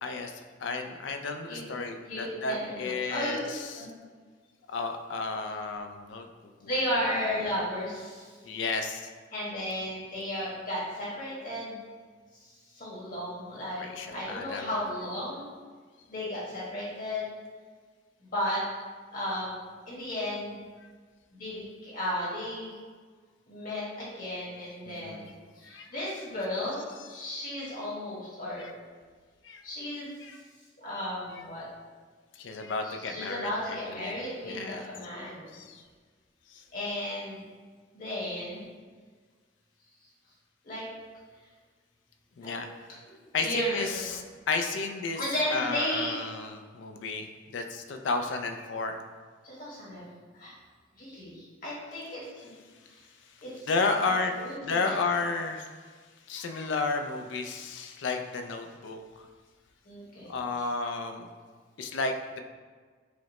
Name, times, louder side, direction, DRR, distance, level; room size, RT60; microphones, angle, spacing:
voice 1, 0.0-3.9 4.7-6.3 6.6-7.0 8.4-9.1 13.8-14.8 24.9-25.2 25.6-25.9 26.9-27.3 27.6-27.7 28.6-28.7 29.4-29.6 30.2-30.4 31.3-31.5 32.3-34.8 35.5-35.8 36.5-36.6 42.4-42.7 43.3-49.0 53.7-54.3 54.6-55.7 56.3-59.3 60.3-61.3 61.8-62.4, left 3 dB, 70° left, 6 dB, 0.4 m, -33 dB
voice 2, 2.1-3.5 3.8-3.9 6.6-8.3 9.3-11.8 12.3-15.5 16.1-17.3 18.2-18.6 19.1-19.5 19.9-20.6 21.3-22.7 23.5-28.6 29.6-30.1 30.8-31.7 33.1-35.5 36.7-37.4 37.9-38.7 40.6-40.8 42.4-42.6 43.0-44.1 45.1-46.2 49.4-50.0 50.3-50.5 51.0-52.6 53.4-53.7 54.0-55.0 59.8-60.4, left 1 dB, 45° left, -7 dB, 1.4 m, -34 dB
4.8 x 2.1 x 4.1 m, 1.5 s
head